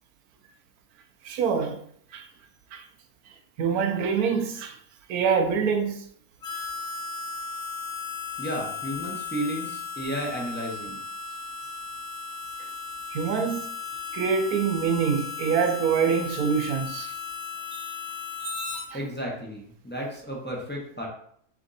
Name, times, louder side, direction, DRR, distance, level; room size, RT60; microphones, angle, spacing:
voice 1, 1.2-1.8 2.1-2.3 2.7-2.8 3.6-4.8 5.1-6.0 13.1-13.7 14.1-17.1 18.4-19.0, right 6 dB, 70° right, 1.0 m, -25 dB
Harmonica, 6.4-18.9, left 5 dB, 50° left, 0.9 m, -36 dB
voice 2, 8.4-11.0 18.9-21.1, equal, 15° left, 0.4 m, -33 dB
3.7 x 3.5 x 3.9 m
omnidirectional pair, 1.7 m